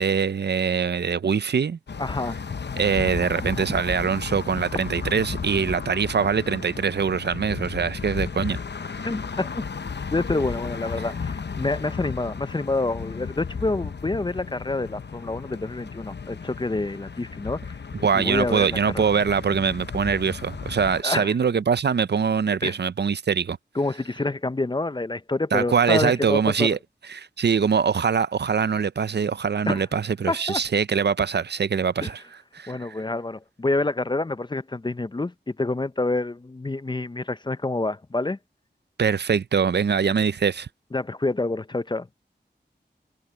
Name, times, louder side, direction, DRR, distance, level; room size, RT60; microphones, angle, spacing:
voice 1, 0.0-1.8 2.8-8.6 17.9-23.6 25.5-26.8 27.1-32.2 32.5-33.0 39.0-40.7, right 6 dB, 70° right, 0.5 m, -23 dB
sound 1, 1.9-21.0, left 5 dB, 70° left, 0.7 m, -34 dB
voice 2, 2.0-2.4 9.0-9.6 10.1-17.8 18.1-19.1 21.0-21.3 22.6-22.7 23.8-26.7 29.7-29.8 30.3-30.6 32.0-32.1 32.7-38.4 40.9-42.1, left 2 dB, 25° left, 0.5 m, -27 dB
wide cardioid pair, 75°, 18 cm